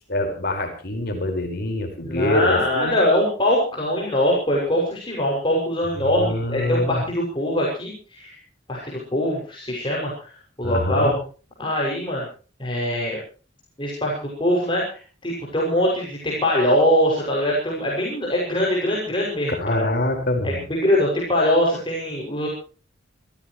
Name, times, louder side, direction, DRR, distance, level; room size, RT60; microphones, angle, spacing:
voice 1, 0.1-2.9 6.0-7.0 10.6-11.2 19.5-20.6, left 1 dB, 55° left, 5 dB, 5.0 m, -25 dB
voice 2, 2.0-8.3 8.7-10.3 10.6-11.1 11.6-12.3 12.6-13.2 13.8-19.9 20.4-22.5, left 1 dB, 25° left, -4 dB, 6.4 m, -22 dB
27.5 x 15.5 x 3.2 m, 0.39 s
head